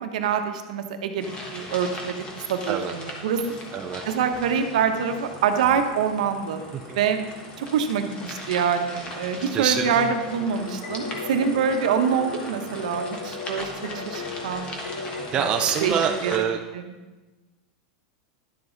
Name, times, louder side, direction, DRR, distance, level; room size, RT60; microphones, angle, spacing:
voice 1, 0.0-2.2 2.5-3.4 4.1-6.6 6.9-7.2 7.6-14.7 15.3-15.5 15.8-15.9 16.2-16.3, right 7 dB, 75° right, 6 dB, 1.0 m, -25 dB
sound 1, 1.2-16.4, left 1 dB, 25° left, 1.4 m, -39 dB
voice 2, 3.7-4.0 6.7-7.0 9.5-10.1 15.3-16.6, right 8 dB, 25° right, 4 dB, 0.5 m, -25 dB
sound 2, 10.6-15.8, left 4 dB, 85° left, 1.3 m, -37 dB
11.0 x 7.1 x 4.0 m, 1.2 s
supercardioid pair, 155°, 4 cm